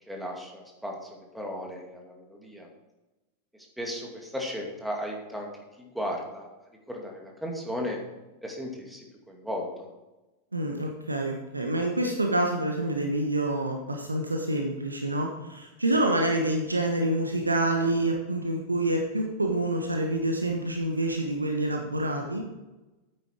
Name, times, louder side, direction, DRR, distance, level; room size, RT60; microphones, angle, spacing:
voice 1, 0.1-2.7 3.5-5.5 5.8-6.5 6.9-8.0 8.4-9.9, equal, 5° right, 0 dB, 2.4 m, -35 dB
voice 2, 10.5-22.4, right 1 dB, 80° right, 2 dB, 1.2 m, -27 dB
9.3 x 9.2 x 4.6 m, 1.1 s
figure-of-eight pair, 90°, 0 cm